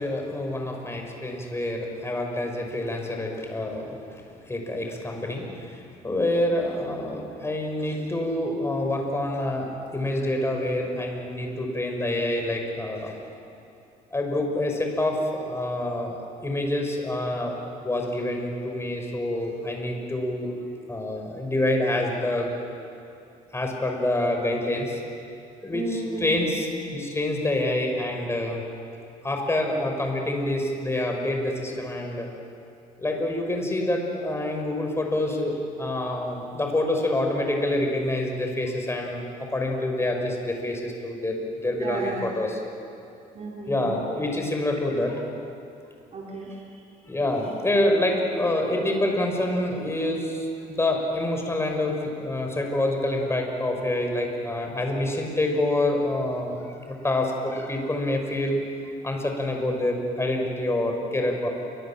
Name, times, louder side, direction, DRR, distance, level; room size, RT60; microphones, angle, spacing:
voice 1, 0.0-4.0 4.5-13.1 14.1-17.6 17.8-20.5 20.9-22.5 23.5-25.0 25.6-26.7 26.9-28.6 29.2-32.3 33.0-41.4 41.6-42.6 43.7-45.2 47.1-58.6 59.0-61.5, left 1 dB, 15° left, 2 dB, 5.9 m, -27 dB
voice 2, 25.7-26.3 41.7-42.2 43.3-43.9 46.1-46.8, right 3 dB, 40° right, -4 dB, 4.2 m, -33 dB
29.5 x 24.0 x 7.5 m, 2.6 s
cardioid pair, 110°, 17 cm